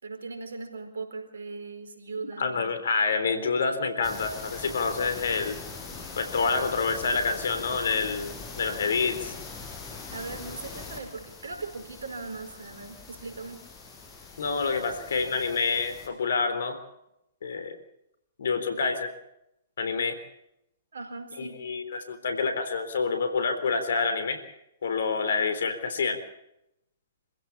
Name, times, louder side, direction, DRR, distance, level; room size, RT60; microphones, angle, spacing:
voice 1, 0.0-2.7 10.1-13.6 20.9-21.6, right 4 dB, 75° right, 6 dB, 4.6 m, -39 dB
voice 2, 2.4-5.6 6.2-9.3 14.4-16.8 17.4-17.8 18.4-19.1 19.8-20.2 21.4-24.4 24.8-26.2, left 4 dB, 70° left, 10 dB, 3.8 m, -27 dB
sound 1, 4.0-16.1, left 4 dB, 25° left, 5.7 m, -42 dB
26.0 x 16.0 x 7.2 m, 0.83 s
hypercardioid pair, 120°, 0 cm